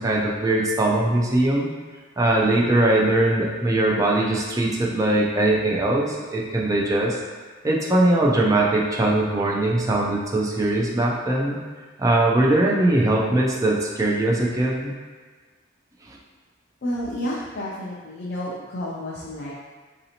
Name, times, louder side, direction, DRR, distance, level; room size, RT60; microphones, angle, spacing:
voice 1, 0.0-1.7 2.2-7.2 7.6-11.6 12.0-14.9 16.1-16.2, right 1 dB, 15° right, -3 dB, 0.4 m, -21 dB
voice 2, 16.8-19.5, left 1 dB, 50° left, -6 dB, 0.5 m, -30 dB
4.1 x 2.7 x 2.8 m, 1.4 s
head